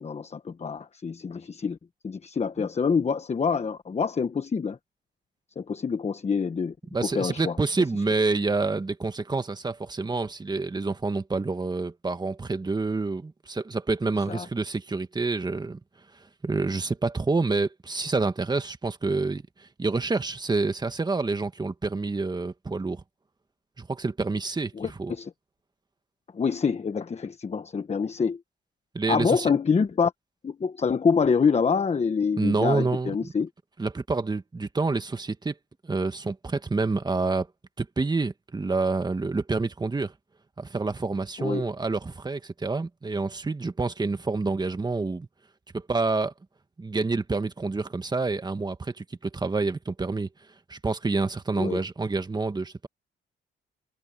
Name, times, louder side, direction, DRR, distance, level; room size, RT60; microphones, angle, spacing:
voice 1, 0.0-1.8 2.0-4.8 5.5-6.7 7.0-7.6 14.3-14.5 24.7-25.3 26.3-28.4 29.1-30.1 30.4-33.5 41.4-41.7 51.6-51.8, left 5 dB, 35° left, 1.3 m, -26 dB
voice 2, 6.9-15.8 16.4-23.0 23.8-24.7 25.0-25.1 28.9-29.5 32.4-33.3 33.8-35.6 35.8-37.5 37.8-40.1 40.6-45.3 45.7-46.3 46.8-50.3 50.7-52.9, right 3 dB, 20° right, 1.6 m, -28 dB
cardioid pair, 90°, 20 cm